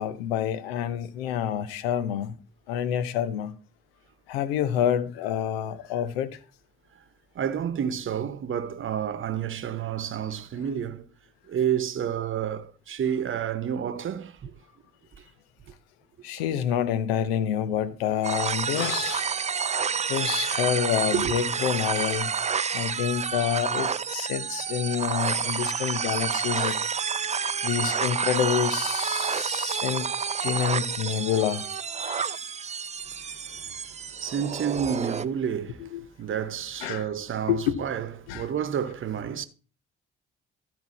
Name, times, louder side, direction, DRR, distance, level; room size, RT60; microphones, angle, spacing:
voice 1, 0.0-2.4 2.7-3.5 4.3-6.4 16.2-19.3 20.1-22.3 22.7-26.8 27.6-30.1 30.4-31.6 32.0-32.4 35.8-36.0 36.8-37.1 37.5-37.9 38.3-38.5, left 9 dB, 80° left, 0.8 m, -28 dB
voice 2, 7.3-11.1 11.5-14.5 21.1-21.3 33.5-33.6 34.2-35.9 36.2-39.5, right 8 dB, 45° right, 1.0 m, -30 dB
sound 1, 18.2-35.2, right 6 dB, 25° right, 0.5 m, -29 dB
13.0 x 4.5 x 4.2 m
hypercardioid pair, 45°, 29 cm